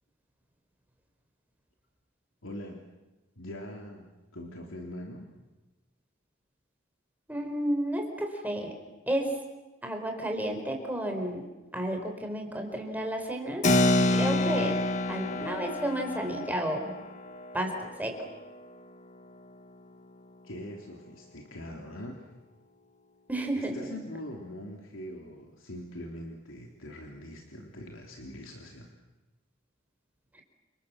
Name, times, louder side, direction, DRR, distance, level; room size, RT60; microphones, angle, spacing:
voice 1, 2.4-2.8 3.4-5.3 20.4-22.3 23.6-28.9, left 1 dB, 85° left, 1 dB, 3.1 m, -42 dB
voice 2, 7.3-8.7 9.1-9.3 9.8-11.4 11.7-13.7 14.1-14.8 15.1-16.9 17.5-18.2 23.3-23.7 30.3-30.4, right 1 dB, 10° right, 3 dB, 4.6 m, -31 dB
Keyboard (musical), 13.6-19.7, left 2 dB, 40° left, 1.4 m, -29 dB
29.0 x 27.0 x 7.3 m, 1.1 s
head